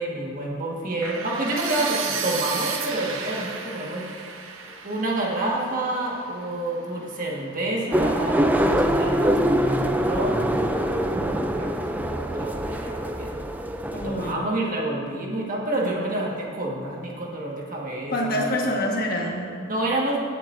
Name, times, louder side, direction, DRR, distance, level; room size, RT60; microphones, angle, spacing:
voice 1, 0.0-4.3 4.8-13.3 13.9-18.5 19.7-20.2, right 1 dB, 40° right, -2 dB, 1.6 m, -29 dB
sound 1, 1.0-6.9, right 6 dB, 85° right, 0.9 m, -33 dB
sound 2, 7.9-14.3, equal, 10° right, 0.4 m, -24 dB
voice 2, 13.9-14.5 18.1-19.5, left 1 dB, 45° left, -1 dB, 1.5 m, -26 dB
17.5 x 7.3 x 2.6 m, 2.4 s
head